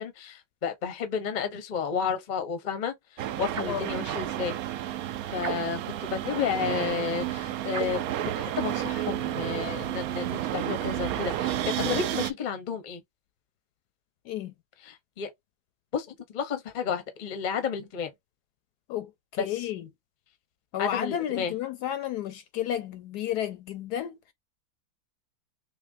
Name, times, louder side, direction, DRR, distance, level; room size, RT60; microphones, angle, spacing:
voice 1, 0.0-4.5 4.8-4.9 5.3-5.8 6.1-8.0 8.4-13.0 14.8-15.3 15.9-18.1 19.4-19.6 20.8-21.5, left 6 dB, 40° left, 0.7 m, -31 dB
sound 1, 3.2-12.3, right 12 dB, 70° right, 0.8 m, -31 dB
sound 2, 3.5-3.9 5.4-6.0 7.7-8.1, right 5 dB, 85° right, 0.5 m, -37 dB
voice 2, 18.9-19.9 20.7-24.3, left 11 dB, 70° left, 1.0 m, -32 dB
5.7 x 2.2 x 2.6 m
omnidirectional pair, 2.0 m